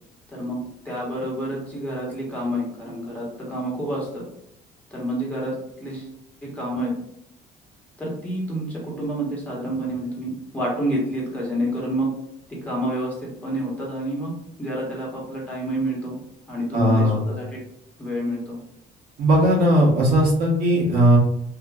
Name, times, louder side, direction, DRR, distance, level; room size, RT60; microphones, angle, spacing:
voice 1, 0.8-4.2 4.9-6.1 6.4-6.9 8.0-12.1 12.6-14.3 14.6-16.2 16.5-17.6 18.0-18.6, equal, 10° left, -5 dB, 1.3 m, -28 dB
voice 2, 16.7-17.2 19.2-21.2, equal, 70° right, -4 dB, 1.2 m, -18 dB
2.9 x 2.5 x 2.4 m, 0.77 s
cardioid pair, 110°, 17 cm